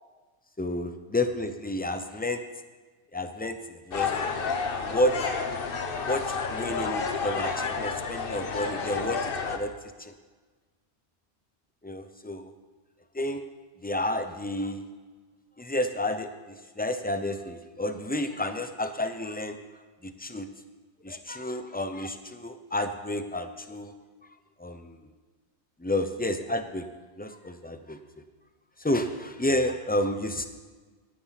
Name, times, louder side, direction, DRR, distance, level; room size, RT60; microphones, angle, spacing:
voice 1, 0.6-2.4 3.1-4.6 4.8-5.1 6.0-9.7 10.0-10.1 11.8-12.5 13.1-13.4 13.8-14.8 15.6-19.6 20.0-20.5 21.0-23.9 24.6-25.0 25.8-26.9 27.2-28.0 28.8-30.5, left 1 dB, 10° left, 8 dB, 0.6 m, -30 dB
sound 1, 3.9-9.6, left 5 dB, 55° left, 1.1 m, -30 dB
17.0 x 10.0 x 4.2 m, 1.4 s
omnidirectional pair, 1.2 m